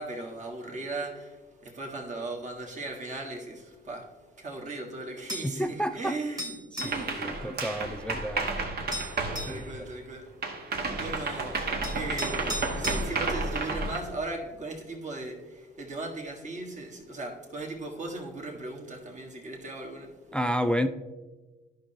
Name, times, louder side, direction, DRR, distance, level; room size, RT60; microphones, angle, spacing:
voice 1, 0.0-4.1 4.3-8.0 9.4-10.3 10.7-20.1, right 2 dB, 35° right, 1.7 m, -38 dB
sound 1, 5.3-5.6 6.4-7.0 8.4-8.5 8.9-9.6 11.2-11.3 11.8-13.0, equal, 20° right, 1.7 m, -36 dB
voice 2, 5.4-6.2 6.7-8.5 9.4-9.6 20.3-20.9, equal, 5° left, 0.4 m, -30 dB
sound 2, 6.8-10.1 10.4-14.0, right 3 dB, 55° right, 1.2 m, -31 dB
11.5 x 5.6 x 2.9 m
cardioid pair, 90°, 20 cm